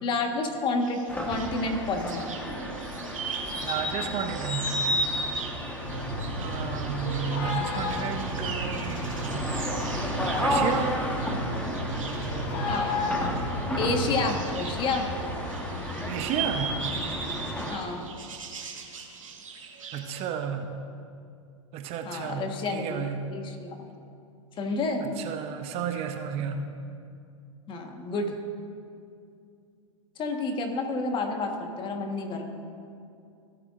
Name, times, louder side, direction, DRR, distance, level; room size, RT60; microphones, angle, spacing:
voice 1, 0.0-2.3 12.7-13.0 13.7-15.1 17.7-18.1 22.0-23.8 24.6-25.1 27.7-28.4 30.2-32.4, left 3 dB, 30° left, 4 dB, 1.3 m, -30 dB
sound 1, 0.8-20.2, right 5 dB, 85° right, 1.5 m, -40 dB
sound 2, 1.1-17.8, equal, 10° left, 1.2 m, -32 dB
voice 2, 3.6-4.8 6.4-9.5 10.4-11.0 16.1-16.8 19.9-20.8 21.7-23.3 25.2-26.7, right 7 dB, 35° right, 6 dB, 0.7 m, -32 dB
sound 3, 5.8-14.1, left 1 dB, 60° left, 1.8 m, -33 dB
16.5 x 8.2 x 2.5 m, 2.5 s
hypercardioid pair, 110°, 17 cm